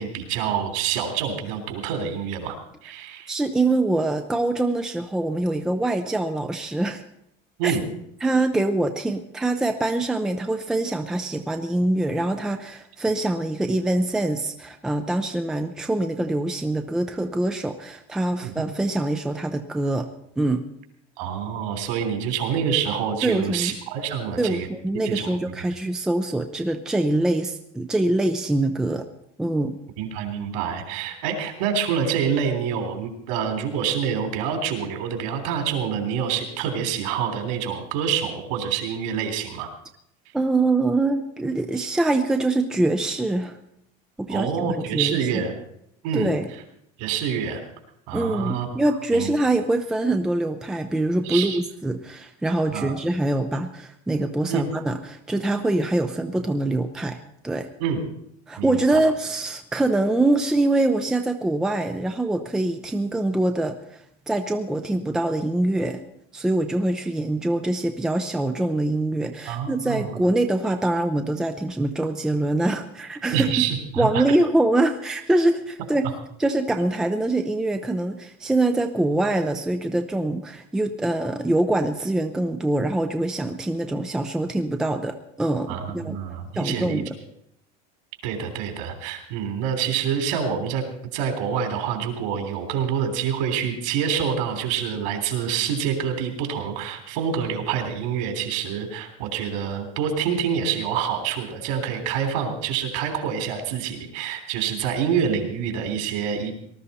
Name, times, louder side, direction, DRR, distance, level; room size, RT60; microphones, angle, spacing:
voice 1, 0.0-2.6 2.8-3.3 7.6-7.8 18.4-18.6 21.2-24.7 25.0-25.4 30.0-39.7 44.3-45.5 46.0-46.3 47.0-47.6 48.1-48.7 49.1-49.3 51.2-51.6 52.7-52.9 54.5-54.6 57.8-58.0 58.6-58.8 69.5-70.2 73.3-74.4 85.7-87.0 88.2-90.8 91.1-106.5, right 7 dB, 60° right, 5 dB, 3.3 m, -26 dB
voice 2, 3.3-7.0 7.6-7.8 8.2-20.1 20.4-20.6 23.2-23.7 24.4-29.1 29.4-29.8 40.3-43.6 44.2-45.4 46.1-46.5 48.1-57.2 57.4-57.7 58.5-66.0 66.3-73.5 74.0-76.1 76.4-86.2 86.6-87.1, right 2 dB, 5° right, 6 dB, 0.4 m, -24 dB
19.0 x 13.0 x 4.2 m, 0.74 s
cardioid pair, 175°, 19 cm